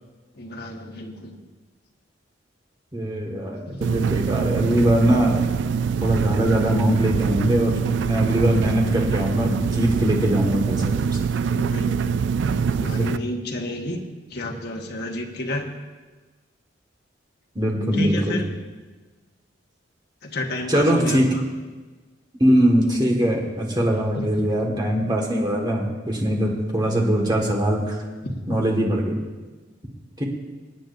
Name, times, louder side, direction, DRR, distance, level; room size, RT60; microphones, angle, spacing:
voice 1, 0.3-1.4 3.6-3.9 11.5-14.0 14.3-15.7 17.9-18.5 20.2-21.4 23.9-24.4 28.2-28.6, left 1 dB, 60° left, 1 dB, 1.3 m, -31 dB
voice 2, 2.9-5.4 6.0-11.1 12.8-13.1 17.6-18.4 20.7-21.3 22.4-28.0 28.5-29.2 30.2-30.3, equal, 25° right, 0 dB, 1.7 m, -22 dB
sound 1, 3.8-13.2, right 6 dB, 65° right, 0.3 m, -24 dB
24.0 x 9.0 x 2.6 m, 1.3 s
head